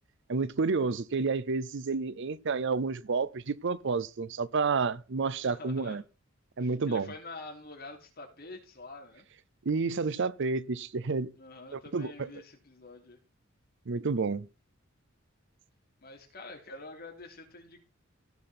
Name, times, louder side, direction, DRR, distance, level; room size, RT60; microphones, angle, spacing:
voice 1, 0.3-6.0 6.6-7.1 9.7-11.3 11.7-12.3 13.9-14.5, right 4 dB, 60° right, 0.6 m, -30 dB
voice 2, 5.4-6.0 6.6-9.2 11.4-13.2 16.0-17.8, left 2 dB, 50° left, 3.2 m, -46 dB
16.5 x 5.9 x 4.3 m
head